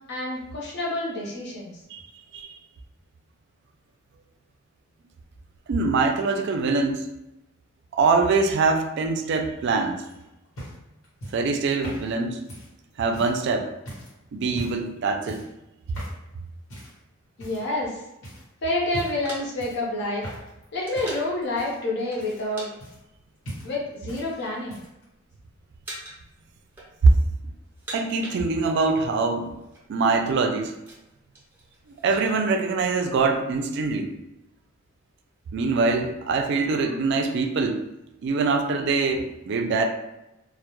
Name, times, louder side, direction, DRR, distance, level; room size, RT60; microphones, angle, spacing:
voice 1, 0.1-1.7 17.4-18.0 18.6-20.2 20.7-22.7 23.6-24.8, left 2 dB, 55° left, -3 dB, 0.7 m, -28 dB
voice 2, 5.7-7.1 7.9-10.0 11.3-12.4 13.0-13.7 14.3-15.4 27.0-27.1 27.9-29.5 29.9-30.7 32.0-34.1 35.5-37.9 38.2-39.8, right 4 dB, 55° right, 5 dB, 0.3 m, -23 dB
sound 1, 10.0-13.4 13.9-14.1 14.5-14.9 15.3-15.6 15.9-16.2 16.7-17.0 17.4-17.9 18.2-18.5 18.9-19.3 19.6-20.6 20.9-23.2 23.4-24.3 24.5-25.0 26.0-26.1, equal, 80° left, 1.0 m, -40 dB
sound 2, 18.9-21.4 22.1-22.7 23.0-23.2 23.9-24.6 24.9-25.4 25.8-26.3 26.6-27.3 27.6-28.9 29.2-29.3 29.5-29.8 30.3-32.3, right 1 dB, 10° right, 0.6 m, -42 dB
2.2 x 2.0 x 2.9 m, 0.92 s
head